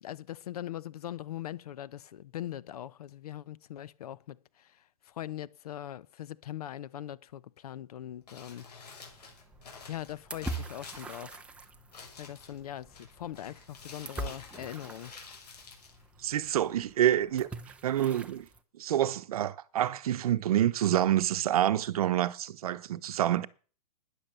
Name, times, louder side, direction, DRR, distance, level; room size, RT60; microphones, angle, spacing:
voice 1, 0.0-9.0 9.9-11.4 12.2-15.1, left 12 dB, 70° left, 0.9 m, -41 dB
Crumpling crinkling, 8.1-16.7, left 5 dB, 85° left, 7.1 m, -51 dB
sound 1, 9.1-18.6, right 2 dB, 5° right, 0.8 m, -44 dB
voice 2, 16.2-17.5 17.8-18.5 18.7-23.5, right 11 dB, 65° right, 1.0 m, -27 dB
13.5 x 10.5 x 6.9 m
hypercardioid pair, 155°, 20 cm